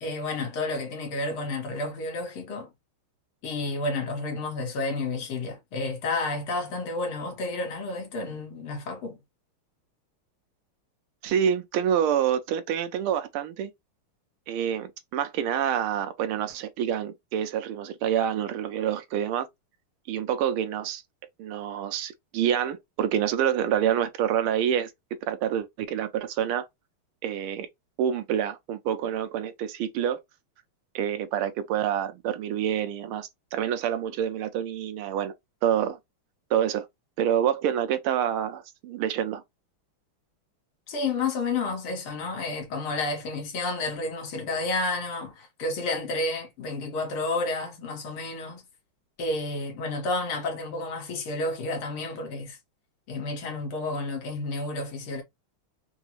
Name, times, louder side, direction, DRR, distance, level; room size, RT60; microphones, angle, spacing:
voice 1, 0.0-2.7 3.4-9.2 40.9-48.7 49.2-52.6 53.1-55.2, left 2 dB, 75° left, 2.0 m, -31 dB
voice 2, 11.2-13.7 14.5-19.5 20.1-21.0 21.4-24.9 25.3-26.7 27.2-27.7 28.0-30.2 30.9-35.3 35.6-36.0 36.5-36.9 37.2-39.4, right 9 dB, 85° right, 1.5 m, -27 dB
4.6 x 2.0 x 2.9 m
omnidirectional pair, 2.4 m